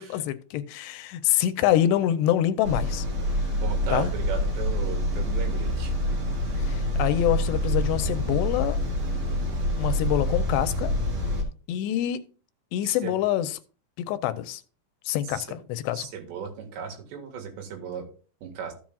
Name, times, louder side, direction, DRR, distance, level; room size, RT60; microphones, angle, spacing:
voice 1, 0.0-3.1 3.9-4.1 6.6-8.8 9.8-10.9 11.7-12.2 12.7-13.6 14.0-14.6 15.1-16.1, left 12 dB, 85° left, 2.7 m, -26 dB
sound 1, 2.6-11.4, left 1 dB, 45° right, 2.9 m, -26 dB
voice 2, 3.5-5.9 12.8-13.2 15.3-15.6 15.9-18.1 18.4-18.7, right 7 dB, 75° right, 3.9 m, -36 dB
14.5 x 7.4 x 2.4 m
omnidirectional pair, 5.0 m